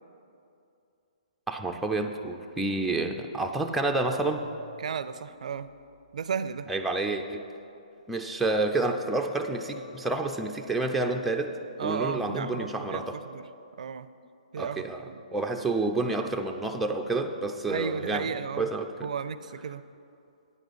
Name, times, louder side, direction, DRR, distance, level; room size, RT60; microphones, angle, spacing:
voice 1, 1.5-4.4 6.7-7.4 8.1-11.5 11.8-13.2 14.6-15.0 15.3-18.3 18.6-18.9, right 2 dB, ahead, 2 dB, 0.4 m, -29 dB
sound 1, 3.6-5.1 5.4-6.3 6.8-6.9 7.5-7.7 8.4-11.0 12.1-12.6, left 1 dB, 85° left, 2.7 m, -52 dB
voice 2, 4.8-5.7 6.1-6.7 11.8-13.5 13.8-14.1 14.5-15.2 17.7-18.7 19.0-19.8, right 6 dB, 65° right, 14 dB, 0.4 m, -34 dB
9.6 x 5.0 x 8.0 m, 2.6 s
hypercardioid pair, 155°, 4 cm